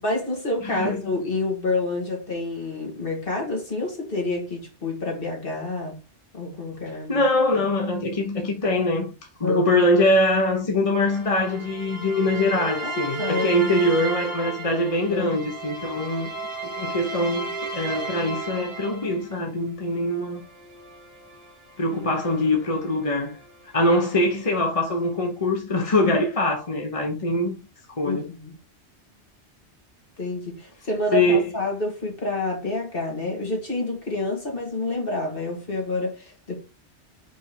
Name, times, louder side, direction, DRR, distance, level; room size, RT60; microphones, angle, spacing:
voice 1, 0.0-6.0 6.3-7.2 9.4-9.8 12.8-13.5 15.1-15.4 28.0-28.6 30.2-36.6, left 2 dB, 50° left, 2.3 m, -28 dB
voice 2, 0.6-1.0 7.1-9.1 9.4-16.3 16.6-20.4 21.8-23.4 23.7-27.6 28.0-28.3 31.1-31.5, left 1 dB, 30° left, 1.0 m, -23 dB
sound 1, 10.9-19.4 20.3-23.5, right 3 dB, 45° right, 1.4 m, -34 dB
5.2 x 3.5 x 5.2 m
omnidirectional pair, 1.2 m